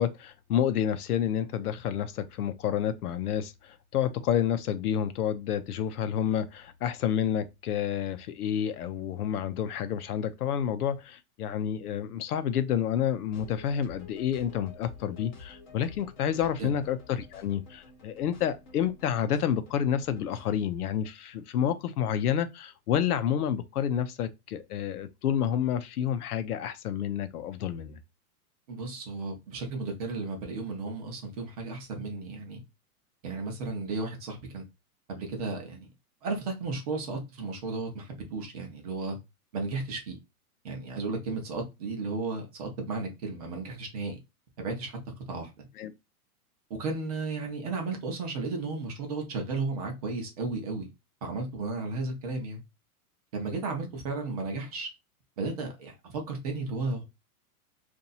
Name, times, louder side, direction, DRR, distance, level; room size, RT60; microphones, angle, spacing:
voice 1, 0.0-28.0 45.8-45.9, left 9 dB, 85° left, 0.7 m, -29 dB
sound 1, 13.3-20.6, left 4 dB, 30° left, 0.7 m, -50 dB
voice 2, 28.7-32.6 33.2-34.6 35.1-35.9 36.2-39.2 39.5-40.2 40.6-44.2 44.6-45.0 45.3-45.7 46.7-50.9 51.2-52.6 53.3-54.9 55.4-57.0, right 3 dB, 25° right, 0.6 m, -34 dB
2.9 x 2.6 x 4.0 m
supercardioid pair, 170°, 45 cm